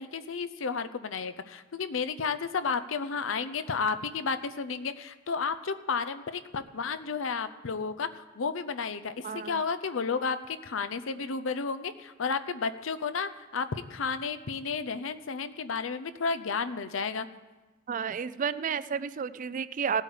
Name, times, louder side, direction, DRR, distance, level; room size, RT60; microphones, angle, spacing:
voice 1, 0.0-17.3, left 5 dB, 70° left, 13 dB, 0.6 m, -32 dB
voice 2, 9.2-9.6 17.9-20.0, right 7 dB, 40° right, 15 dB, 0.4 m, -31 dB
17.5 x 8.3 x 4.9 m, 1.2 s
head